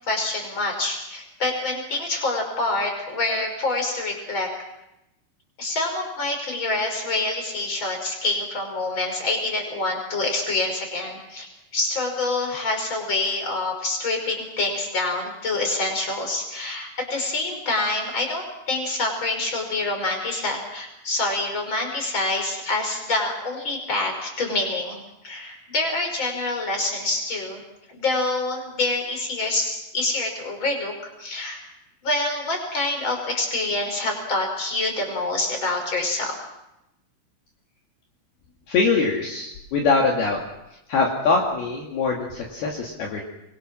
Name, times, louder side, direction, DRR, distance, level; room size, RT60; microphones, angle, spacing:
voice 1, 0.0-4.5 5.6-11.5 11.7-27.6 27.9-31.6 32.0-36.3, left 2 dB, 25° left, 3 dB, 5.8 m, -26 dB
voice 2, 38.7-40.4 40.9-43.2, left 4 dB, 60° left, -1 dB, 4.0 m, -23 dB
26.5 x 23.5 x 6.2 m, 0.89 s
omnidirectional pair, 5.5 m